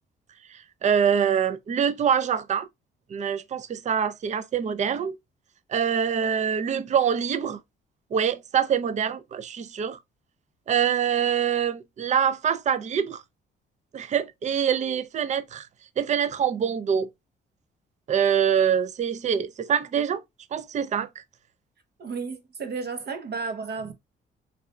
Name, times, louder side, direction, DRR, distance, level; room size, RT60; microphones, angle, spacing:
voice 1, 0.5-2.7 3.1-5.2 5.7-7.6 8.1-10.0 10.7-13.2 13.9-15.7 16.0-17.1 18.1-20.2 20.5-21.1, right 8 dB, 35° right, 0.4 m, -25 dB
voice 2, 22.0-23.9, right 4 dB, 55° right, 0.9 m, -33 dB
3.7 x 3.3 x 2.2 m
cardioid pair, 90°, 20 cm